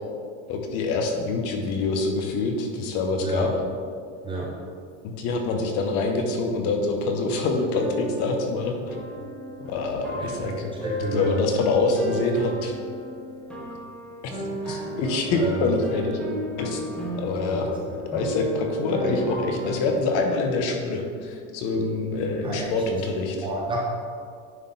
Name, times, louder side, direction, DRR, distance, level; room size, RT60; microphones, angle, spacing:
voice 1, 0.5-3.5 5.2-9.0 9.7-10.7 11.1-12.7 14.7-16.2 16.6-16.8 17.2-17.7 18.1-23.5, left 3 dB, 40° left, 3 dB, 0.8 m, -25 dB
sound 1, 7.6-19.8, equal, ahead, 1.0 m, -35 dB
voice 2, 11.0-11.3 14.6-14.8 15.3-15.6 17.5-17.7 22.4-22.7 23.4-23.8, right 2 dB, 15° right, -4 dB, 0.6 m, -29 dB
9.6 x 4.0 x 3.8 m, 2.2 s
supercardioid pair, 165°, 38 cm